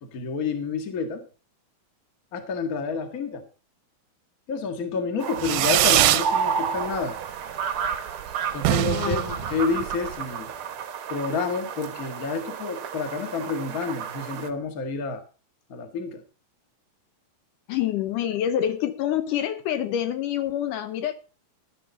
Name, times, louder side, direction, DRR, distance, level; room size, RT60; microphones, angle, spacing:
voice 1, 0.0-1.3 2.3-3.5 4.5-7.2 8.5-10.5 11.1-15.2 15.7-16.2, left 4 dB, 35° left, 6 dB, 1.6 m, -29 dB
sound 1, 5.2-14.5, right 7 dB, 60° right, 1.4 m, -32 dB
Fireworks, 5.4-6.3 6.7-7.2 7.5-7.6 7.8-8.0 8.2-8.3 8.5-10.2, right 14 dB, 75° right, 2.0 m, -23 dB
voice 2, 8.9-9.4 17.7-21.1, left 10 dB, 75° left, 10 dB, 2.3 m, -27 dB
12.0 x 11.5 x 4.1 m, 0.34 s
omnidirectional pair, 4.0 m